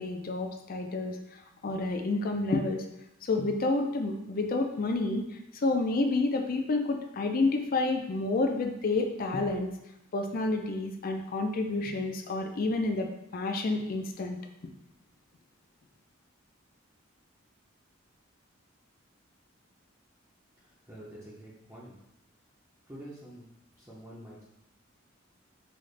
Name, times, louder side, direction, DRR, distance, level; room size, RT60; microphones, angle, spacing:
voice 1, 0.0-2.8 3.2-5.2 5.5-9.7 10.1-14.4, left 2 dB, 45° left, 4 dB, 0.4 m, -29 dB
voice 2, 20.6-21.9 22.9-23.5 23.8-24.4, right 1 dB, 15° right, -7 dB, 0.6 m, -47 dB
4.0 x 2.4 x 3.2 m, 0.85 s
head